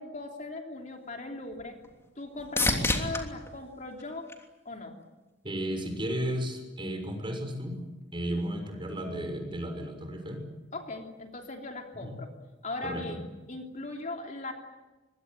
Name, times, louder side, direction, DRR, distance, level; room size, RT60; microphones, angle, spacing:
voice 1, 0.0-1.8 2.2-4.3 4.6-5.0 10.7-12.3 12.6-14.5, left 2 dB, 45° left, 3 dB, 3.2 m, -39 dB
sound 1, 0.8-5.0 5.6-6.2 14.0-14.1, left 2 dB, 15° left, 3.1 m, -33 dB
voice 2, 5.4-7.8 8.1-10.4 11.9-12.2 12.8-13.2, equal, 30° right, 4 dB, 6.4 m, -34 dB
25.5 x 22.5 x 8.9 m, 1.1 s
head